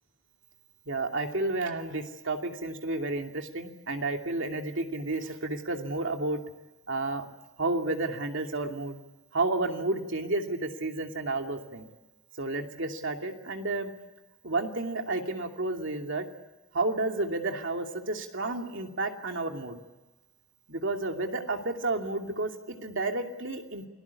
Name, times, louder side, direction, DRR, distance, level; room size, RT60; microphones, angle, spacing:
voice 1, 0.9-6.4 6.9-7.3 7.6-9.0 9.3-11.9 12.4-13.9 14.4-16.3 16.7-19.8 20.7-23.9, right 2 dB, 65° right, 3 dB, 2.7 m, -31 dB
28.5 x 19.5 x 8.5 m, 1.2 s
head